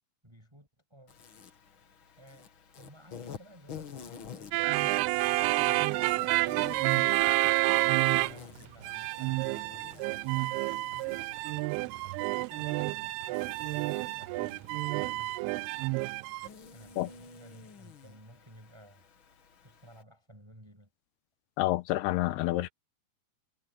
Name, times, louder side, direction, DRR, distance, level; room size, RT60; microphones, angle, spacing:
voice 1, 0.2-1.2 2.2-2.5 2.8-6.7 7.6-10.9 11.5-15.8 16.7-19.1 19.6-20.9, equal, 5° right, 7.9 m, -55 dB
Insect, 1.1-20.0, left 7 dB, 50° left, 1.6 m, -50 dB
sound 1, 4.5-8.6 8.8-16.5, right 22 dB, 85° right, 2.4 m, -29 dB
voice 2, 21.6-22.7, left 17 dB, 85° left, 2.7 m, -28 dB
omnidirectional pair, 4.7 m